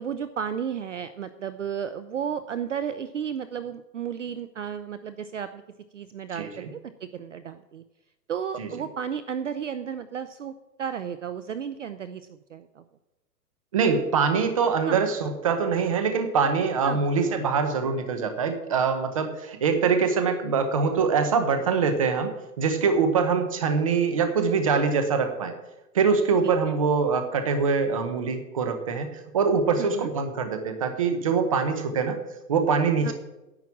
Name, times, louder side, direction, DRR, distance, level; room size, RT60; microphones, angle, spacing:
voice 1, 0.0-5.6 5.9-7.8 8.3-10.5 10.8-12.8 14.9-15.0 16.8-17.0 26.4-26.7 29.8-30.1 33.0-33.1, right 8 dB, 50° right, 12 dB, 0.6 m, -33 dB
voice 2, 6.4-6.7 8.6-8.7 13.7-25.5 25.9-32.2 32.5-33.1, right 5 dB, 20° right, 8 dB, 0.8 m, -24 dB
11.0 x 7.4 x 8.4 m, 1.0 s
hypercardioid pair, 175°, 49 cm